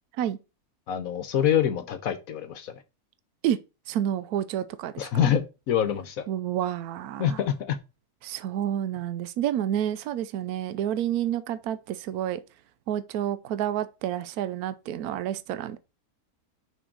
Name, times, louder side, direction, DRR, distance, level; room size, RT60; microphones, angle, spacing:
voice 1, 0.9-2.7 5.0-6.2 7.2-7.8, left 9 dB, 70° left, 1.2 m, -26 dB
voice 2, 3.9-5.3 6.3-7.4 8.2-12.4 12.9-15.8, right 11 dB, 80° right, 1.1 m, -29 dB
6.2 x 5.2 x 4.6 m
omnidirectional pair, 1.6 m